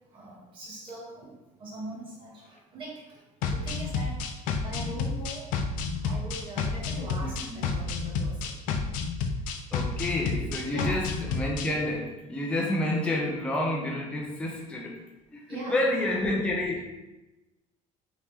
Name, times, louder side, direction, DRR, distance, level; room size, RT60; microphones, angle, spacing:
voice 1, 0.1-1.3 1.6-3.2 3.5-4.2 4.6-5.5 6.0-8.7 10.7-11.0 15.5-16.1, right 2 dB, 40° right, -5 dB, 1.2 m, -41 dB
sound 1, 3.4-11.7, left 4 dB, 80° left, 0.4 m, -30 dB
voice 2, 7.2-7.7 9.7-14.9 15.3-16.9, left 1 dB, 10° left, -2 dB, 0.5 m, -29 dB
3.5 x 2.8 x 3.1 m, 1.0 s
cardioid pair, 155°, 14 cm